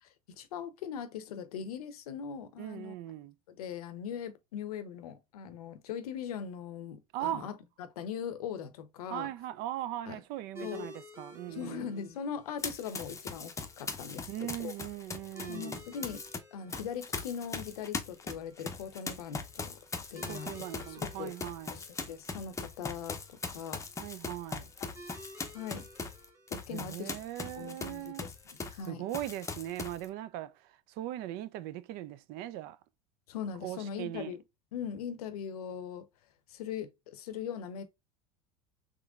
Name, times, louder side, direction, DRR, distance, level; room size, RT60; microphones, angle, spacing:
voice 1, 0.4-2.9 3.5-9.3 10.1-10.2 10.6-10.9 11.5-14.7 15.5-16.2 16.5-19.8 20.1-20.5 20.9-21.3 21.7-23.2 23.5-23.8 25.0-25.1 25.5-25.9 26.5-27.1 27.6-28.3 28.6-29.0 33.3-34.4 34.7-36.1 36.5-37.8, left 8 dB, 80° left, 0.7 m, -40 dB
voice 2, 2.6-3.3 7.1-7.5 9.1-11.9 14.3-15.8 20.3-21.8 24.0-24.7 26.7-28.3 28.8-32.8 33.6-34.3, right 13 dB, 55° right, 0.4 m, -39 dB
sound 1, 10.5-29.7, equal, 15° right, 1.2 m, -54 dB
Run, 12.6-16.4 16.7-28.9 29.1-30.1, left 4 dB, 15° left, 0.6 m, -40 dB
3.7 x 3.2 x 2.3 m
hypercardioid pair, 85°, 19 cm